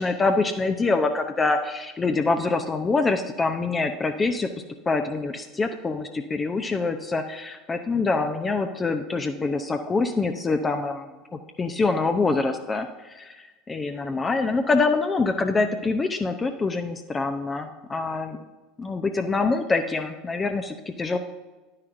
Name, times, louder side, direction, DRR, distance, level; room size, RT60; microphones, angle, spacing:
voice 1, 0.0-4.5 4.9-11.1 11.6-18.4 18.8-21.2, left 3 dB, 20° left, 6 dB, 0.6 m, -25 dB
10.5 x 9.7 x 2.6 m, 1.2 s
figure-of-eight pair, 75°, 0 cm